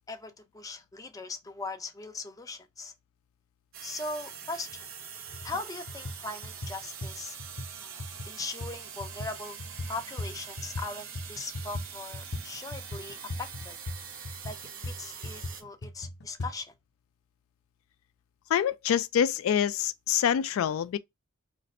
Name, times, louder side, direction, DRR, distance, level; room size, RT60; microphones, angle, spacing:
voice 1, 0.1-2.9 3.8-4.9 5.4-7.4 7.8-9.6 9.9-13.8 14.4-14.6 14.8-16.7, left 3 dB, 15° left, 0.5 m, -40 dB
sound 1, 3.7-15.6, right 7 dB, 75° right, 0.7 m, -44 dB
sound 2, 4.7-4.8 5.3-5.6 5.9-10.9 11.1-16.5, left 1 dB, 55° left, 0.7 m, -39 dB
voice 2, 18.5-21.0, left 9 dB, 80° left, 0.3 m, -26 dB
2.5 x 2.5 x 4.1 m
head